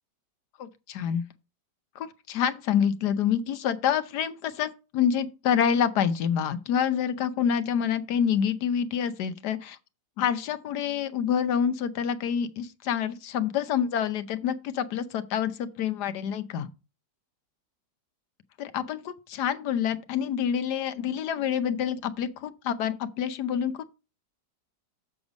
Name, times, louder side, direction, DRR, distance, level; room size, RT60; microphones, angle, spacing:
voice 1, 0.6-1.2 2.0-9.8 10.2-16.7 18.6-24.0, left 8 dB, 70° left, 1.3 m, -27 dB
7.1 x 6.5 x 5.2 m
omnidirectional pair, 1.9 m